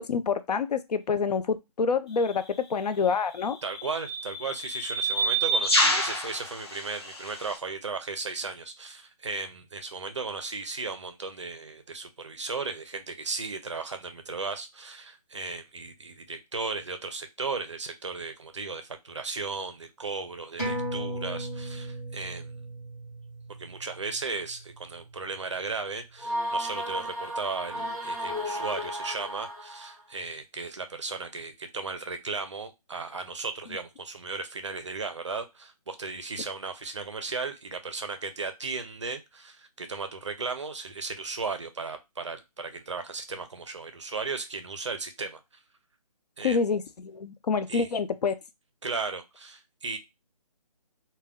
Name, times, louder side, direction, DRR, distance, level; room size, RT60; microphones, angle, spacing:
voice 1, 0.1-2.4 2.7-3.6 46.4-48.3, left 5 dB, 90° left, 11 dB, 0.5 m, -27 dB
sound 1, 2.2-2.4 3.4-7.6, right 1 dB, 40° left, 0.6 m, -28 dB
voice 2, 3.6-22.5 23.6-45.4 46.4-46.6 47.7-47.9 48.8-50.0, right 4 dB, 50° right, 8 dB, 0.4 m, -36 dB
sound 2, 20.6-25.5 25.9-26.0, right 1 dB, 25° left, 1.0 m, -37 dB
sound 3, 26.2-30.0, equal, 5° right, 0.6 m, -33 dB
2.1 x 2.1 x 3.4 m, 0.23 s
hypercardioid pair, 175°, 20 cm